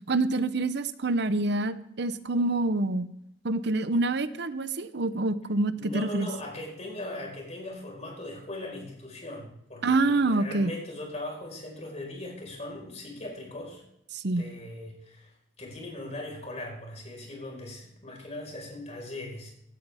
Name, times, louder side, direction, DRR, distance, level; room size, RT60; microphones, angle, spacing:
voice 1, 0.1-3.1 3.4-6.3 9.8-10.7 14.1-14.4, right 2 dB, 65° right, 13 dB, 0.8 m, -26 dB
voice 2, 5.7-13.8 14.4-19.5, left 1 dB, 40° left, 0 dB, 4.8 m, -39 dB
17.0 x 12.5 x 3.5 m, 0.78 s
head